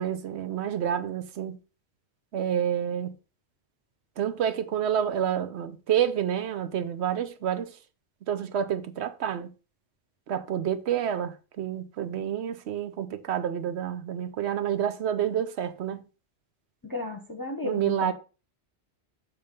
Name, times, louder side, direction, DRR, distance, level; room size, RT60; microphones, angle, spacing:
voice 1, 0.0-1.6 2.3-3.1 4.2-7.7 8.3-9.5 10.3-16.0 17.6-18.1, right 9 dB, 80° right, 1.0 m, -28 dB
voice 2, 16.8-18.1, left 2 dB, 20° left, 0.8 m, -33 dB
7.0 x 3.4 x 5.2 m
omnidirectional pair, 1.1 m